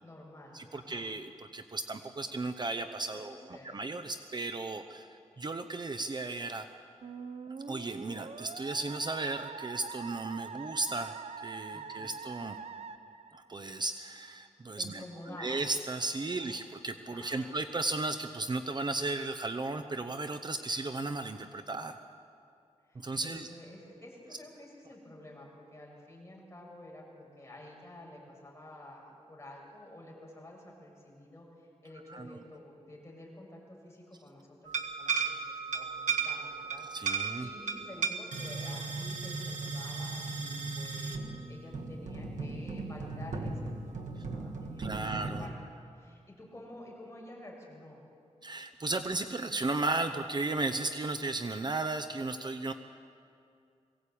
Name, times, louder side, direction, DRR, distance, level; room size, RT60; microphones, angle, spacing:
voice 1, 0.0-1.1 3.1-3.8 11.7-12.1 14.7-15.6 16.3-16.7 17.1-17.6 22.9-36.9 37.1-45.1 45.4-45.5 45.9-48.0, left 1 dB, 20° left, -2 dB, 6.6 m, -50 dB
voice 2, 0.5-6.7 7.5-11.2 11.4-12.6 13.3-15.0 15.4-22.0 22.9-23.5 32.1-32.3 36.9-37.5 44.8-45.5 48.4-52.7, right 3 dB, 35° right, 8 dB, 0.8 m, -35 dB
Musical instrument, 7.0-13.9, right 5 dB, 60° right, 0.9 m, -44 dB
sound 1, 34.7-45.5, right 4 dB, 80° right, 1.8 m, -36 dB
22.0 x 17.5 x 8.6 m, 2.4 s
wide cardioid pair, 115°, 12 cm